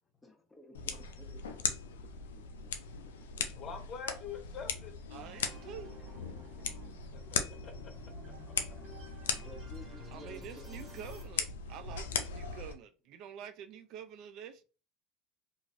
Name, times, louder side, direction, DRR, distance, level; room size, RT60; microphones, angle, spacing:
voice 1, 0.2-2.3 2.6-2.7 3.4-3.5 9.3-11.1, left 1 dB, 10° left, 0.9 m, -54 dB
sound 1, 0.7-12.7, left 6 dB, 90° left, 0.4 m, -39 dB
voice 2, 3.6-4.9 7.1-8.3, left 6 dB, 45° left, 0.8 m, -45 dB
sound 2, 5.1-11.2, left 1 dB, 25° right, 1.5 m, -52 dB
voice 3, 5.1-6.0 10.1-14.6, right 8 dB, 60° right, 0.4 m, -47 dB
3.0 x 2.5 x 2.5 m
hypercardioid pair, 90°, 0 cm